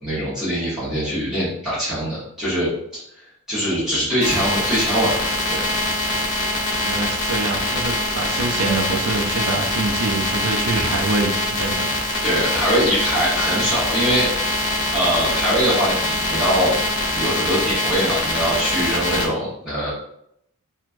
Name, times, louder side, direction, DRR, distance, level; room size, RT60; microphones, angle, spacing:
voice 1, 0.0-3.0 3.5-5.1 5.5-5.6 10.7-10.9 12.2-14.3 14.9-16.8 17.1-19.9, equal, ahead, -12 dB, 1.1 m, -22 dB
sound 1, 4.2-19.3, left 1 dB, 55° left, 0.8 m, -23 dB
voice 2, 6.7-11.9, right 3 dB, 75° right, 2 dB, 0.4 m, -25 dB
3.1 x 2.3 x 2.5 m, 0.73 s
head